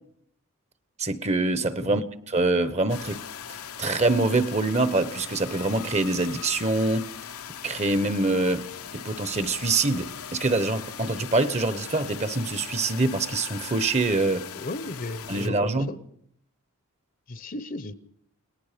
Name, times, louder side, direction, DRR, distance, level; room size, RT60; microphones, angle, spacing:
voice 1, 1.0-3.2 3.8-7.1 7.6-8.7 8.9-14.5 15.3-15.9, right 2 dB, 30° right, 1.0 m, -25 dB
sound 1, 2.9-15.5, left 9 dB, 80° left, 1.0 m, -40 dB
voice 2, 14.5-16.0 17.3-17.9, left 2 dB, 40° left, 0.9 m, -35 dB
29.5 x 19.5 x 5.1 m
head